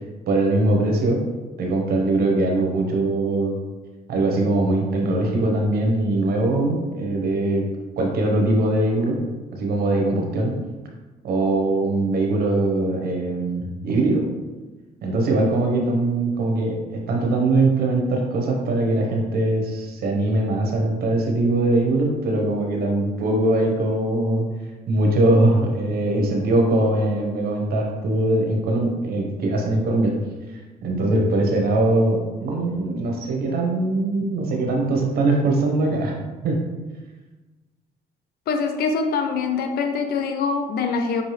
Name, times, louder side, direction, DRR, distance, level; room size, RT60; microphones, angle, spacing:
voice 1, 0.3-1.2 1.6-3.6 4.1-7.7 8.0-9.2 9.5-10.6 11.2-14.3 15.0-24.4 24.9-30.1 30.8-36.1 36.4-36.6, right 2 dB, 75° right, 0 dB, 1.0 m, -21 dB
voice 2, 38.5-41.2, left 5 dB, 75° left, 5 dB, 0.6 m, -24 dB
5.3 x 2.7 x 3.2 m, 1.2 s
cardioid pair, 70°, 16 cm